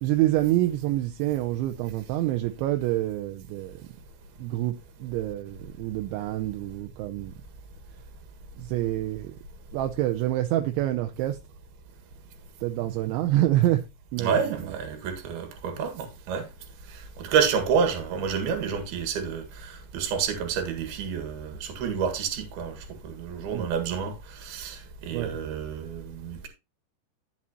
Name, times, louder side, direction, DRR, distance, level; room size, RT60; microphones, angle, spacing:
voice 1, 0.0-3.9 4.4-4.7 5.0-7.3 8.6-9.4 9.7-11.4 12.6-13.8 14.1-14.8 23.5-23.7 25.1-25.3, right 15 dB, 80° right, 3.0 m, -27 dB
voice 2, 14.2-16.4 17.2-22.8 23.0-26.5, right 6 dB, 60° right, 3.4 m, -29 dB
12.5 x 7.5 x 2.9 m
omnidirectional pair, 5.4 m